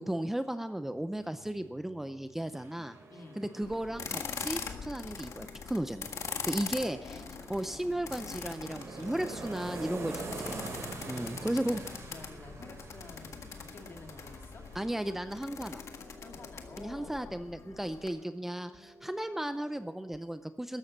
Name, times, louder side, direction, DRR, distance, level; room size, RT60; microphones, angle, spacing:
voice 1, 0.0-3.0 3.4-6.1 6.5-7.2 7.5-10.7 11.0-11.8 14.8-15.8 16.8-20.8, right 1 dB, 5° right, 10 dB, 0.5 m, -35 dB
sound 1, 0.9-20.2, right 2 dB, 40° right, 3.5 m, -57 dB
sound 2, 2.6-5.1 5.4-15.2, right 3 dB, 75° right, 3.6 m, -45 dB
voice 2, 3.1-3.4 6.4-7.2 10.0-10.4 10.8-14.6 16.2-17.3, left 3 dB, 50° left, 3 dB, 2.4 m, -50 dB
sound 3, 3.6-18.1, left 6 dB, 80° left, 1.7 m, -43 dB
14.0 x 12.0 x 7.3 m, 0.93 s
wide cardioid pair, 175°, 5 cm